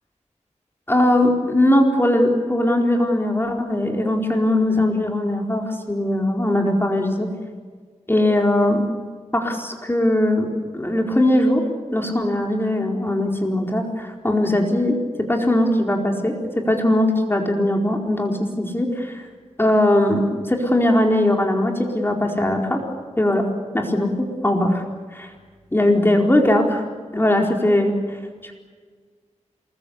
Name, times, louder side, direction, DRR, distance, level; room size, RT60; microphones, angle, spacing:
voice 1, 0.9-7.3 8.1-8.8 9.3-11.6 11.9-15.0 15.3-16.3 16.7-19.2 19.6-22.8 23.2-23.4 23.7-24.8 25.1-25.3 25.7-26.8 27.1-27.9 28.4-28.6, left 1 dB, 20° left, 1 dB, 4.4 m, -20 dB
27.5 x 22.0 x 8.4 m, 1.6 s
wide cardioid pair, 85°, 13 cm